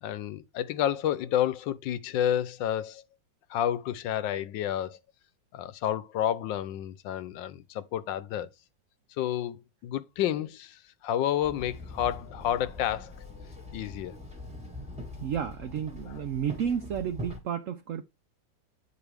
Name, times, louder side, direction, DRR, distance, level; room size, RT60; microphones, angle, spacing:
voice 1, 0.0-3.0 3.5-5.0 5.5-8.5 9.2-13.1 13.7-14.2 16.0-16.2, left 11 dB, 85° left, 1.3 m, -30 dB
Walk footsteps / Chatter / Hiss, 11.4-17.4, left 2 dB, 5° right, 1.1 m, -43 dB
voice 2, 15.2-18.0, right 8 dB, 70° right, 0.7 m, -32 dB
8.8 x 4.7 x 3.4 m
omnidirectional pair, 2.0 m